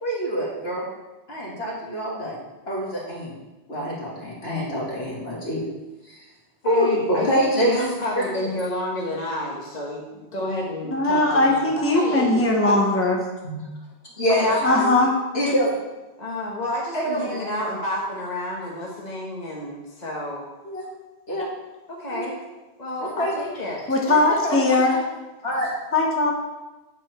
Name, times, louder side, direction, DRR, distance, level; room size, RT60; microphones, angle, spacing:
voice 1, 0.0-0.8 1.3-2.4 2.7-3.3 3.7-5.6 6.0-6.2 6.6-8.5 13.4-13.6 14.2-14.5 15.3-15.7 16.9-17.5 20.6-20.9 21.3-21.5 22.1-22.3 23.0-23.3 24.4-24.6 25.4-25.7, equal, 60° left, -5 dB, 2.8 m, -25 dB
voice 2, 6.6-12.7 14.3-14.9 16.2-20.5 22.0-22.4 22.8-23.8 24.0-24.8, left 1 dB, 40° left, -4 dB, 1.4 m, -30 dB
voice 3, 10.9-13.2 14.6-15.1 23.9-24.9 25.9-26.3, left 2 dB, 10° left, -1 dB, 1.1 m, -19 dB
8.3 x 8.0 x 4.5 m, 1.1 s
omnidirectional pair, 1.2 m